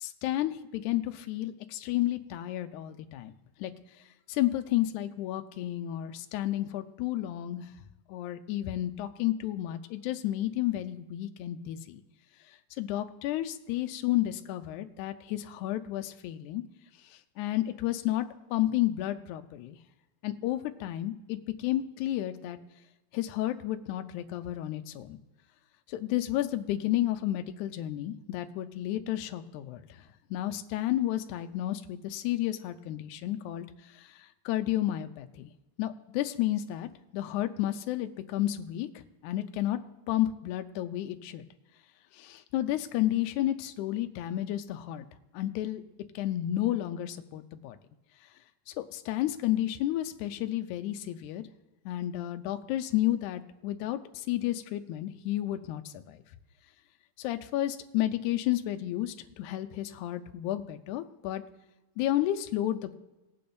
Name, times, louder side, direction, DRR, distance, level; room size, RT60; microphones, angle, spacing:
voice 1, 0.0-3.3 3.6-3.7 4.3-7.7 8.1-12.0 12.8-16.6 17.4-18.3 18.5-19.8 20.2-22.6 23.1-25.2 25.9-29.8 30.3-33.7 34.5-35.5 35.8-38.9 39.2-39.8 40.1-41.4 42.1-45.1 45.3-45.8 46.2-47.8 48.8-51.4 51.9-54.0 54.3-56.2 57.2-61.4 62.0-62.9, left 14 dB, 80° left, 7 dB, 1.9 m, -31 dB
19.0 x 8.5 x 2.6 m, 1.0 s
omnidirectional pair, 3.8 m